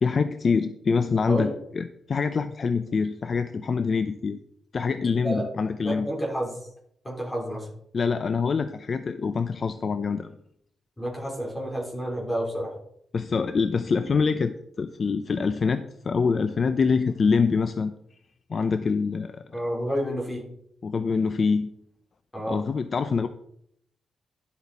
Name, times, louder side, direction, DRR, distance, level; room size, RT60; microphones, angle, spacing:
voice 1, 0.0-4.4 4.7-6.1 7.9-10.3 13.1-17.9 18.5-19.4 20.8-21.7 22.5-23.3, left 5 dB, 40° left, 10 dB, 0.5 m, -25 dB
voice 2, 5.8-6.5 7.0-7.7 11.0-12.8 19.5-20.4 22.3-22.6, equal, 15° left, -2 dB, 3.8 m, -29 dB
12.0 x 8.2 x 4.2 m, 0.72 s
wide cardioid pair, 140°, 0 cm